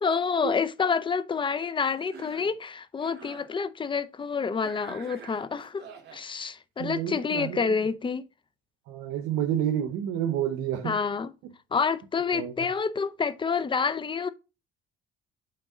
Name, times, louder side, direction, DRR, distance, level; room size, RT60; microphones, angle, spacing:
voice 1, 0.0-8.2 10.8-11.3 11.7-14.3, left 5 dB, 25° left, 0.6 m, -28 dB
Cough, 2.0-2.6 3.0-3.5 4.6-6.2, right 6 dB, 55° right, 2.0 m, -47 dB
voice 2, 6.8-7.7 8.9-11.0 12.3-12.5, right 10 dB, 85° right, 0.9 m, -29 dB
9.1 x 3.6 x 3.7 m
cardioid pair, 105°, 20 cm